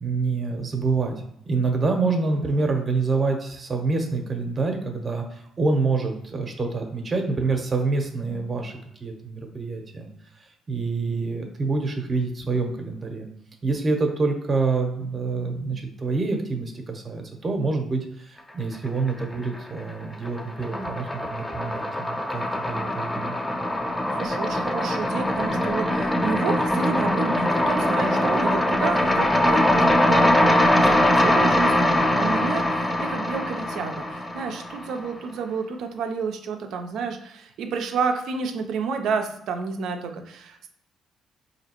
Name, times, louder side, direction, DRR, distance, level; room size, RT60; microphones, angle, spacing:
voice 1, 0.0-1.1 1.4-10.1 10.7-13.3 13.6-23.3, right 3 dB, 40° right, 4 dB, 0.8 m, -26 dB
sound 1, 18.9-19.6 19.9-35.1, left 1 dB, 15° left, 0.5 m, -22 dB
voice 2, 24.2-32.6 33.0-40.7, right 5 dB, 70° right, 5 dB, 0.5 m, -30 dB
3.9 x 2.8 x 2.9 m, 0.74 s
supercardioid pair, 65°, 0 cm